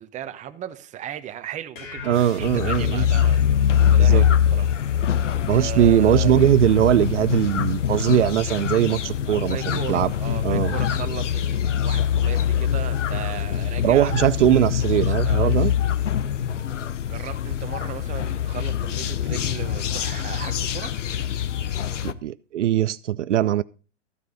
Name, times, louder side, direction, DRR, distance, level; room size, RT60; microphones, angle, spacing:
voice 1, 0.0-4.7 5.1-6.5 9.2-14.1 15.0-15.9 16.7-20.9, right 10 dB, 20° right, 1.1 m, -37 dB
sound 1, 1.7-2.9, left 2 dB, 50° left, 3.8 m, -38 dB
voice 2, 2.1-3.1 4.0-4.3 5.5-10.1 10.4-10.7 13.8-15.7 22.0-23.6, right 11 dB, 70° right, 0.6 m, -20 dB
sound 2, 2.4-22.1, left 9 dB, 75° left, 0.9 m, -23 dB
14.0 x 9.2 x 4.0 m
hypercardioid pair, 120°, 37 cm